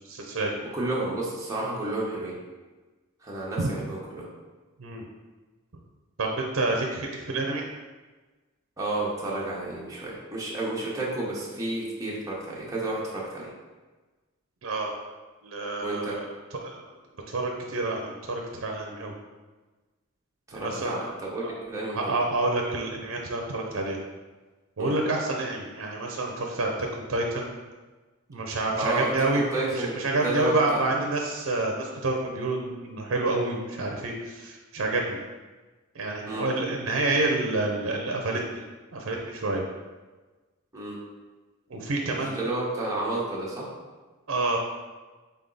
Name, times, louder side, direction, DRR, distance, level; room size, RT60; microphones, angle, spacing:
voice 1, 0.0-0.5 3.6-3.7 4.8-5.0 6.2-7.6 14.6-14.9 15.4-16.2 16.6-16.8 17.3-19.1 20.5-21.1 21.4-21.5 21.9-24.0 24.8-27.5 28.3-29.5 29.7-35.2 35.9-38.6 38.9-39.6 41.7-42.4 44.3-44.6, right 2 dB, 65° right, 1 dB, 0.6 m, -28 dB
voice 2, 0.6-2.4 3.2-4.2 8.8-13.5 15.8-16.2 20.5-22.1 24.8-25.0 28.7-30.8 36.3-36.5 40.7-41.0 42.1-43.7, right 2 dB, 15° right, -6 dB, 0.9 m, -31 dB
3.9 x 3.5 x 3.9 m, 1.3 s
head